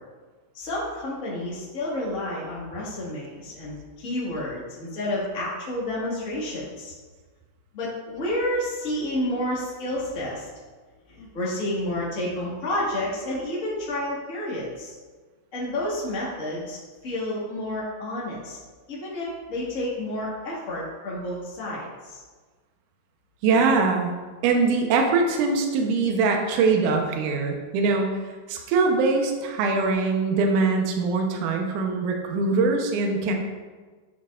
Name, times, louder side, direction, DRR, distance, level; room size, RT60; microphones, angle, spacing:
voice 1, 0.5-6.9 7.7-10.5 11.1-14.9 15.5-16.8 17.0-18.6 18.9-22.2, left 1 dB, 70° left, -7 dB, 0.7 m, -30 dB
voice 2, 23.4-24.1 24.4-28.2 28.5-33.3, right 4 dB, 75° right, 2 dB, 1.9 m, -22 dB
10.0 x 7.2 x 2.5 m, 1.4 s
omnidirectional pair, 4.6 m